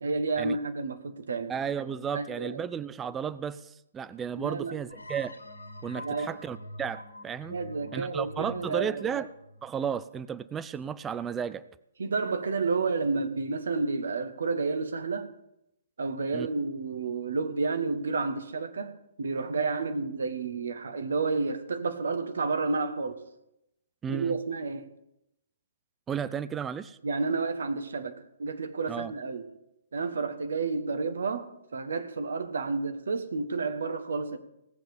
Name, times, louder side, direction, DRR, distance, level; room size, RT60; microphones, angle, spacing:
voice 1, 0.0-1.5 2.1-2.7 4.4-4.7 5.9-6.3 7.5-9.0 12.0-15.3 16.0-23.2 24.1-24.9 27.0-29.5 29.9-34.4, right 4 dB, 65° right, 1.4 m, -30 dB
voice 2, 1.5-5.3 5.8-7.6 7.9-9.3 9.6-11.6 16.3-16.5 24.0-24.4 26.1-27.0 28.9-29.1, right 7 dB, 15° right, 0.5 m, -33 dB
sound 1, 4.9-10.4, left 1 dB, 85° left, 1.7 m, -45 dB
17.5 x 7.7 x 6.9 m
figure-of-eight pair, 120°, 0 cm